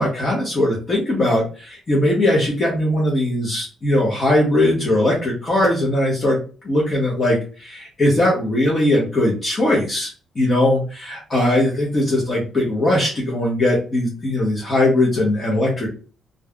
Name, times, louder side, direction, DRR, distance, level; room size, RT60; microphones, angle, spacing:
voice 1, 0.0-6.4 6.6-10.1 10.3-15.9, left 1 dB, 35° left, -4 dB, 1.2 m, -19 dB
3.2 x 2.6 x 2.3 m, 0.36 s
cardioid pair, 90°, 0 cm